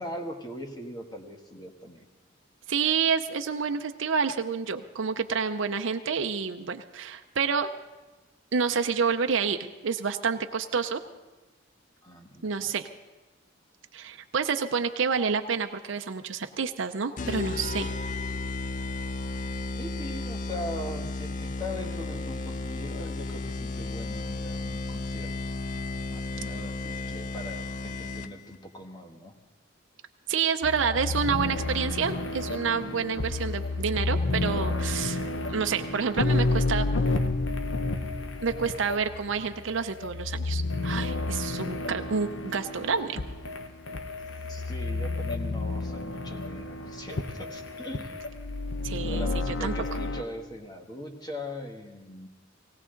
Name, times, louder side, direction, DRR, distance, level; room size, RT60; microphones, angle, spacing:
voice 1, 0.0-2.1 12.0-12.7 19.8-25.3 25.9-29.4 44.5-48.2 48.9-52.3, left 1 dB, 20° left, 3 dB, 1.5 m, -40 dB
voice 2, 2.7-7.7 8.5-11.0 12.4-12.9 13.9-17.9 30.3-36.9 38.4-43.2 48.8-49.7, right 6 dB, 75° right, 6 dB, 0.6 m, -28 dB
sound 1, 17.2-28.5, left 3 dB, 40° left, 0.5 m, -34 dB
sound 2, 30.6-50.2, left 2 dB, 75° left, 0.9 m, -31 dB
18.5 x 18.0 x 3.9 m, 1.1 s
head